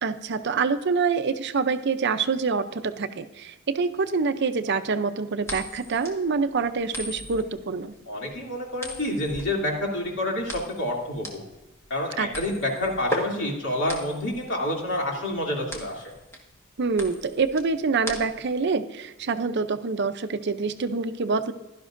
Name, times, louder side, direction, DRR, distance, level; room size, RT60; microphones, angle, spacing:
voice 1, 0.0-7.9 12.2-12.3 16.8-21.5, right 4 dB, 50° right, 10 dB, 0.5 m, -26 dB
sound 1, 5.4-18.6, equal, 10° left, 1.4 m, -37 dB
voice 2, 8.1-11.4 11.9-16.2, left 1 dB, 55° left, -2 dB, 2.7 m, -28 dB
16.0 x 12.0 x 2.6 m, 1.0 s
head